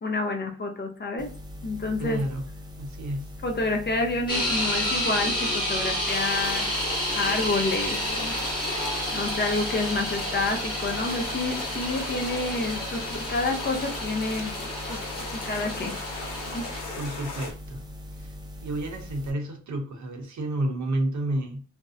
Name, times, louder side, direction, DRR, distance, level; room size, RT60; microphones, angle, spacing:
voice 1, 0.0-1.3 1.6-2.2 3.4-6.8 7.1-8.3 8.7-14.5 14.9-15.0 15.3-16.0 16.5-16.7, left 2 dB, 35° left, 4 dB, 0.5 m, -29 dB
sound 1, 1.2-19.3, left 1 dB, 15° right, 0.6 m, -41 dB
voice 2, 2.0-2.4 2.8-3.3 17.0-17.8 18.2-18.3 18.6-21.6, right 1 dB, 60° right, 3 dB, 0.7 m, -30 dB
sound 2, 4.3-16.8, equal, 15° left, 1.0 m, -31 dB
sound 3, 6.0-17.5, left 3 dB, 65° left, 0.9 m, -37 dB
2.5 x 2.0 x 2.5 m, 0.39 s
cardioid pair, 85°, 32 cm